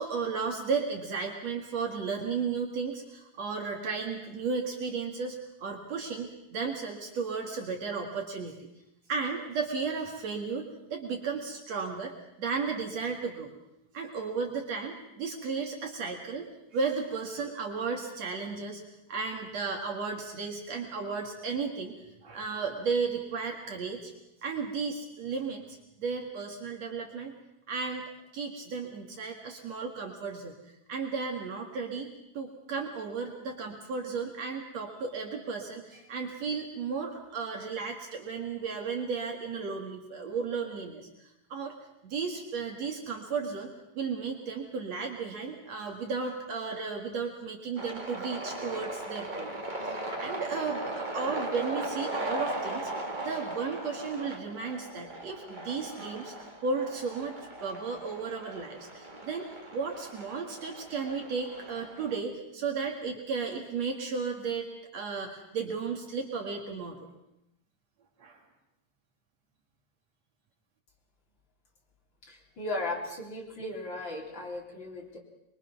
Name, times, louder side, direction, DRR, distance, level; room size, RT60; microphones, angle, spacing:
voice 1, 0.0-8.7 9.1-12.1 12.4-13.5 13.9-16.5 16.7-18.8 19.1-21.9 22.2-24.1 24.4-27.3 27.7-30.6 30.9-41.1 41.5-41.8 42.0-49.5 50.2-56.3 56.6-64.7 64.9-67.1 68.2-68.4, right 5 dB, 65° right, 2 dB, 3.1 m, -34 dB
sound 1, 47.8-62.2, right 1 dB, 20° right, 1.4 m, -38 dB
voice 2, 72.3-75.2, left 2 dB, 40° left, -1 dB, 4.0 m, -36 dB
23.5 x 23.5 x 6.0 m, 0.85 s
omnidirectional pair, 3.3 m